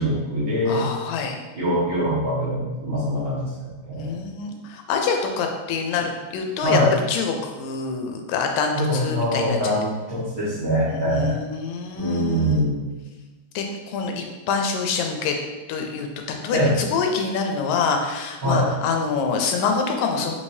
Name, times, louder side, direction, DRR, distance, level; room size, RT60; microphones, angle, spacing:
voice 1, 0.0-0.8 1.5-3.5 3.9-4.2 6.6-6.9 8.7-11.4 11.9-12.8 16.5-16.7 18.4-18.7, equal, 45° right, -10 dB, 1.1 m, -23 dB
voice 2, 0.7-1.4 4.0-6.8 7.1-9.6 10.9-12.7 13.6-15.4 15.7-16.1 16.4-20.3, left 5 dB, 85° left, 3 dB, 2.3 m, -26 dB
5.6 x 3.2 x 2.7 m, 1.2 s
omnidirectional pair, 3.9 m